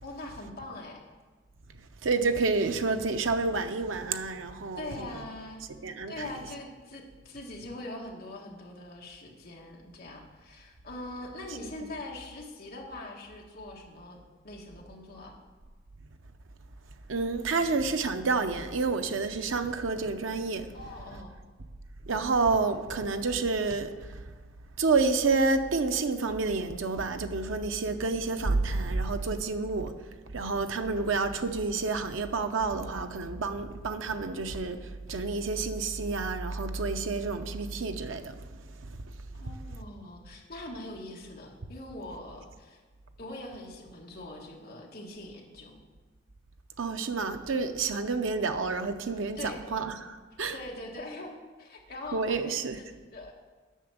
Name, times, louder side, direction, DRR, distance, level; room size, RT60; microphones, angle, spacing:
voice 1, 0.0-1.0 4.8-5.6 6.1-14.2 14.4-15.4 20.7-21.3 39.4-42.8 43.2-45.8 49.4-49.6 50.5-53.3, left 2 dB, 50° left, 1.6 m, -42 dB
voice 2, 2.0-5.1 5.8-6.3 17.1-20.7 22.0-24.2 24.8-29.9 30.3-38.5 38.8-39.0 46.8-50.5 52.1-52.8, right 4 dB, 85° right, 0.7 m, -29 dB
8.2 x 6.0 x 7.2 m
head